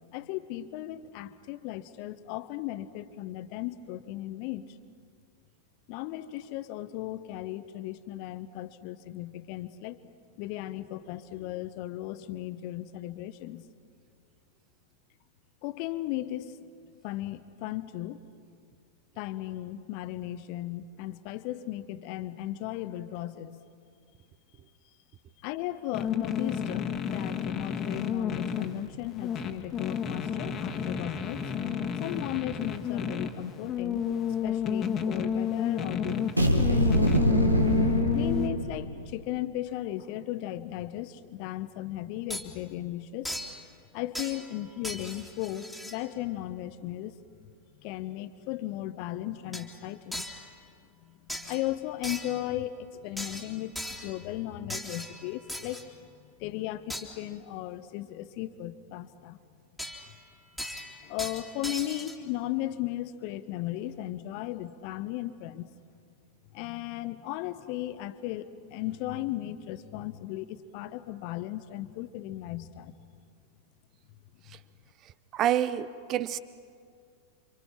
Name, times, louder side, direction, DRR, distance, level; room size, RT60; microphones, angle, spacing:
voice 1, 0.1-4.7 5.9-10.0 10.4-13.6 15.6-16.6 17.0-18.2 19.2-23.6 25.4-31.4 32.0-34.0 34.4-37.1 38.1-43.3 43.9-47.2 47.8-50.3 51.0-56.1 56.4-59.4 61.0-65.7 66.5-73.0, left 14 dB, 45° left, 13 dB, 1.1 m, -36 dB
sound 1, 25.9-38.5, left 7 dB, 30° left, 1.7 m, -31 dB
sound 2, 36.4-39.1, equal, 85° right, 1.8 m, -24 dB
sound 3, 42.3-42.5 43.2-43.6 44.1-44.6 44.8-46.0 49.5-49.7 50.1-50.5 51.3-51.7 52.0-52.5 53.2-54.2 54.7-55.9 56.9-57.1 59.8-60.2 60.6-62.2, equal, ahead, 2.5 m, -38 dB
voice 2, 75.3-76.4, right 11 dB, 35° right, 17 dB, 0.9 m, -27 dB
28.5 x 26.0 x 5.8 m, 2.3 s
figure-of-eight pair, 90°, 0 cm